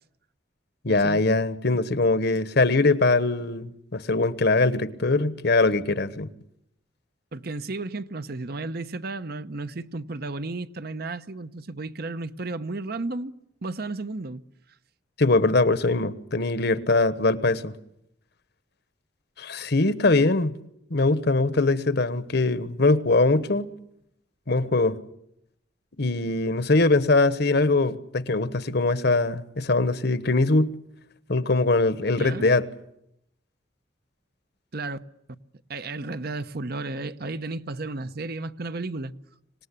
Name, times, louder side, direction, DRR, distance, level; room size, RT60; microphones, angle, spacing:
voice 1, 0.8-6.3 15.2-17.7 19.4-20.5 20.9-23.7 24.5-25.0 26.0-30.7 31.3-32.7, left 3 dB, 60° left, 1.2 m, -22 dB
voice 2, 7.3-14.4 32.2-32.5 34.7-35.0 35.7-39.1, right 3 dB, 55° right, 0.9 m, -33 dB
25.5 x 19.0 x 10.0 m
head